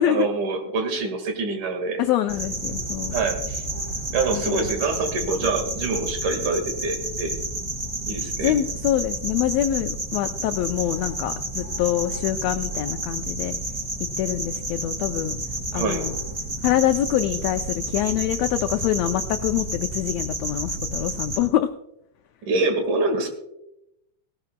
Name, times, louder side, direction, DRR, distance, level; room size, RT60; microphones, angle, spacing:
voice 1, 0.0-2.0 3.1-3.6 4.1-7.4 8.1-8.5 15.7-16.0 22.4-23.3, right 3 dB, 70° right, 6 dB, 3.3 m, -25 dB
voice 2, 2.0-3.1 4.3-4.7 8.4-13.6 14.2-15.4 15.7-16.1 16.6-21.7, left 12 dB, 85° left, 8 dB, 1.5 m, -25 dB
sound 1, 2.3-21.4, right 1 dB, 5° right, 3.1 m, -30 dB
18.5 x 16.0 x 2.2 m, 0.84 s
omnidirectional pair, 3.7 m